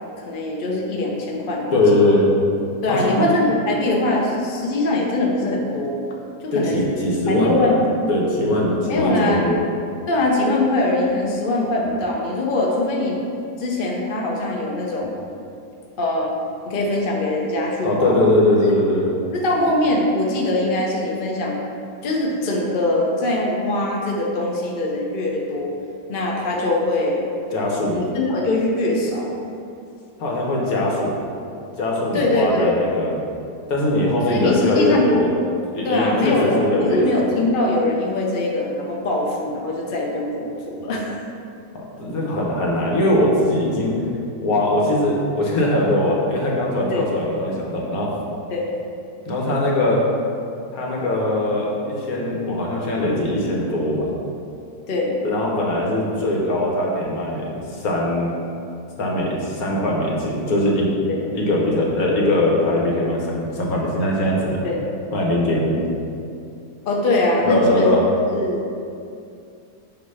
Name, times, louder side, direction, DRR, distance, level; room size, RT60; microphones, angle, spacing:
voice 1, 0.2-2.1 2.8-6.0 6.4-6.8 7.3-7.8 8.8-9.4 10.1-13.2 13.6-15.1 16.0-16.3 16.6-18.2 19.3-21.6 22.0-25.7 26.1-27.2 27.9-29.3 32.1-32.8 34.3-35.1 35.8-41.2 46.9-47.1 48.5-48.7 54.9-55.2 61.1-61.2 64.6-64.9 66.9-68.0 68.3-68.8, left 2 dB, 45° left, -2 dB, 0.7 m, -22 dB
voice 2, 1.7-2.3 2.9-3.2 6.5-7.7 8.1-9.6 17.8-19.1 27.5-28.0 30.2-31.1 31.8-33.3 33.7-35.3 35.7-37.2 41.7-44.0 44.4-48.1 49.3-50.0 50.7-54.1 55.2-58.3 59.0-60.9 61.3-64.6 65.1-65.8 67.5-68.0, left 1 dB, 60° left, -3 dB, 1.5 m, -21 dB
8.0 x 2.8 x 5.5 m, 2.5 s
omnidirectional pair, 1.8 m